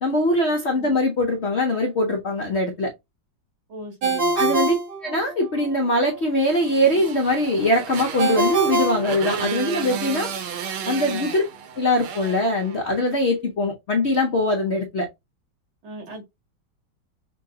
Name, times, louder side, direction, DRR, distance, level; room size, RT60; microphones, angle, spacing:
voice 1, 0.0-2.9 4.4-4.7 5.0-10.3 10.9-11.4 11.8-15.1, left 1 dB, 75° left, 0.6 m, -22 dB
voice 2, 3.7-4.6 11.1-11.3 15.8-16.2, right 2 dB, 75° right, 2.8 m, -38 dB
Ringtone, 4.0-5.7 8.2-9.9, right 3 dB, 55° right, 1.5 m, -24 dB
Motorcycle, 6.4-13.1, right 7 dB, 90° right, 1.8 m, -33 dB
5.8 x 2.3 x 2.7 m
omnidirectional pair, 2.2 m